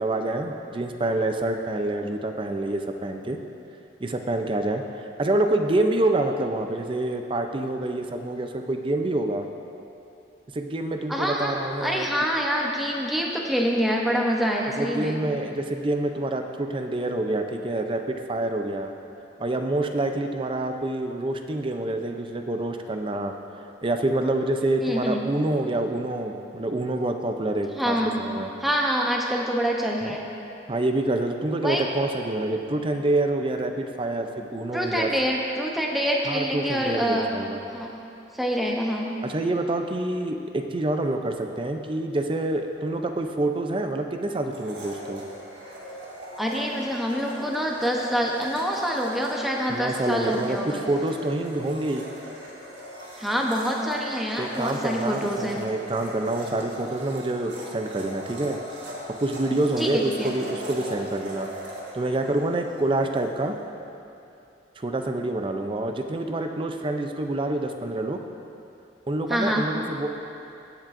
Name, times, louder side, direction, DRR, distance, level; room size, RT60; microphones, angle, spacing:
voice 1, 0.0-3.4 4.0-4.8 5.2-9.4 10.5-12.3 14.8-18.9 19.4-23.3 23.8-28.5 30.7-35.1 36.3-37.6 39.2-45.2 49.7-52.0 54.4-58.6 59.2-61.5 61.9-63.6 64.8-68.2 69.1-70.1, right 2 dB, 25° right, 5 dB, 0.5 m, -27 dB
voice 2, 11.1-15.2 24.8-25.2 27.8-28.1 28.6-30.2 31.6-31.8 34.7-37.3 37.7-38.0 38.3-39.1 46.4-50.8 53.2-55.6 56.4-56.5 59.8-60.3 69.3-69.6, equal, ahead, -2 dB, 0.8 m, -26 dB
Domestic sounds home sounds, 44.5-63.3, right 1 dB, 70° right, 1.6 m, -39 dB
17.0 x 7.3 x 2.6 m, 2.7 s
head